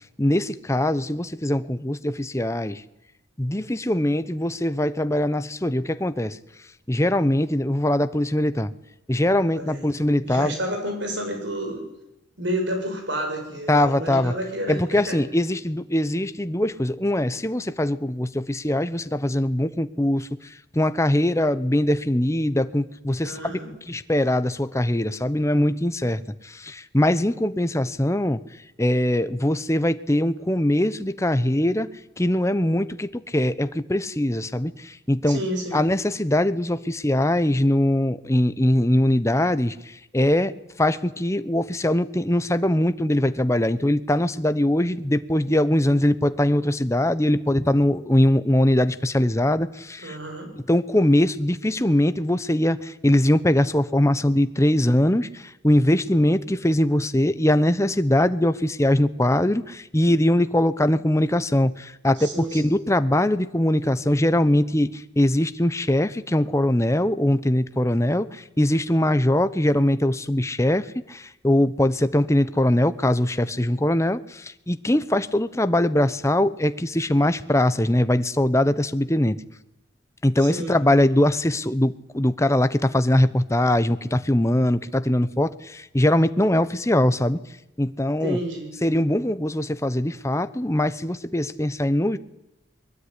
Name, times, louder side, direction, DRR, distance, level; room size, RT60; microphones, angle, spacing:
voice 1, 0.2-2.8 3.4-6.4 6.9-8.7 9.1-10.5 13.7-14.3 14.7-20.3 20.7-23.6 23.9-28.4 28.8-31.9 32.2-35.4 35.7-40.5 40.8-50.2 50.7-79.4 80.2-87.4 87.8-88.4 88.8-92.2, left 1 dB, 15° left, 12 dB, 0.9 m, -22 dB
voice 2, 9.5-9.9 10.2-11.9 12.4-15.2 23.2-23.7 35.3-35.8 50.0-50.5 62.1-62.8 80.4-80.8 88.2-88.7, right 1 dB, 70° right, 4 dB, 7.9 m, -30 dB
22.0 x 22.0 x 9.9 m, 0.87 s
head